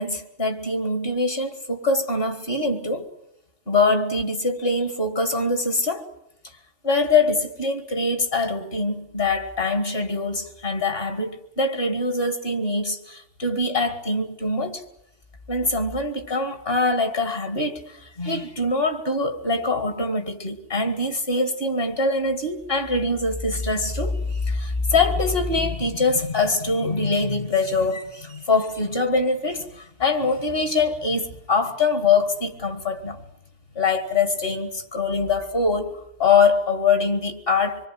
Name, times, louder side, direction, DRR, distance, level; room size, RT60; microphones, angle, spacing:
voice 1, 0.0-3.1 3.7-6.1 6.8-14.8 15.5-33.2 33.8-37.9, left 3 dB, 50° left, 2.4 m, -23 dB
25.5 x 22.5 x 7.6 m
omnidirectional pair, 1.2 m